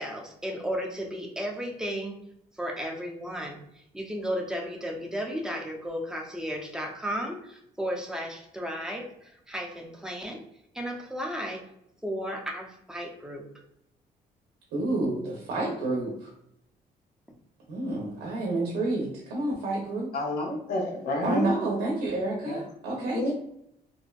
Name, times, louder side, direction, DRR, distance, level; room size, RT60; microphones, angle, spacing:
voice 1, 0.0-2.2 2.6-3.6 3.9-10.4 10.7-11.6 12.0-13.5, equal, 5° right, 0 dB, 0.5 m, -34 dB
voice 2, 14.7-16.3 17.7-20.1 21.2-23.3, right 2 dB, 85° right, -2 dB, 0.6 m, -29 dB
voice 3, 20.1-21.6 22.5-22.6 22.9-23.3, left 1 dB, 70° left, -1 dB, 0.8 m, -29 dB
2.6 x 2.1 x 2.3 m, 0.75 s
cardioid pair, 85°, 16 cm